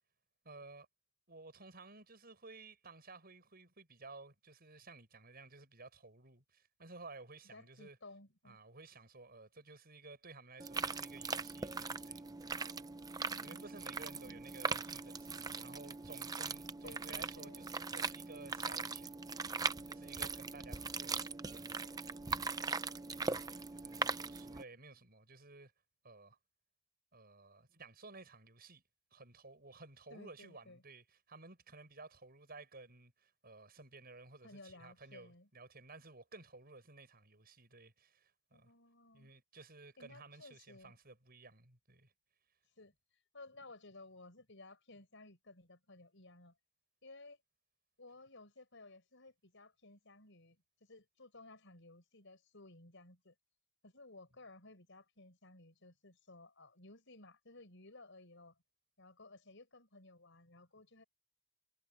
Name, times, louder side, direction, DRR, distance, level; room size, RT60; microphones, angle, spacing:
voice 1, 0.4-0.9 1.3-8.0 8.4-12.3 13.2-19.1 19.8-21.7 23.7-25.7 26.0-26.4 27.1-28.8 29.1-38.7 39.1-42.1, right 3 dB, 45° right, 7.3 m, -55 dB
voice 2, 7.5-8.6 13.2-14.4 16.8-17.6 20.8-20.9 30.1-30.8 34.4-35.5 38.5-39.3 40.0-40.9 42.8-42.9 43.3-46.5 47.0-47.4 48.0-53.3 53.8-58.6 59.0-61.0, left 2 dB, 60° left, 6.2 m, -57 dB
sound 1, 10.6-24.6, right 4 dB, 15° right, 0.6 m, -40 dB
head